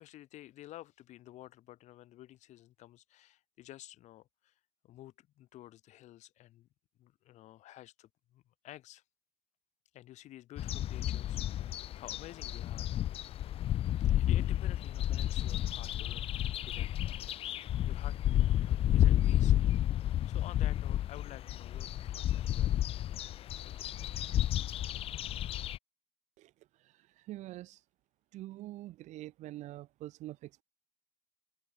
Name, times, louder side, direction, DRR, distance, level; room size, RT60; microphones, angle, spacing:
voice 1, 0.0-6.7 7.0-9.0 9.9-12.9 14.0-19.6 20.3-22.8 23.6-24.2, left 14 dB, 80° left, 4.0 m, -52 dB
sound 1, 10.6-25.8, left 12 dB, 55° left, 0.4 m, -31 dB
voice 2, 27.3-27.8 28.3-30.6, right 16 dB, 85° right, 1.4 m, -45 dB
cardioid pair, 140°, 12 cm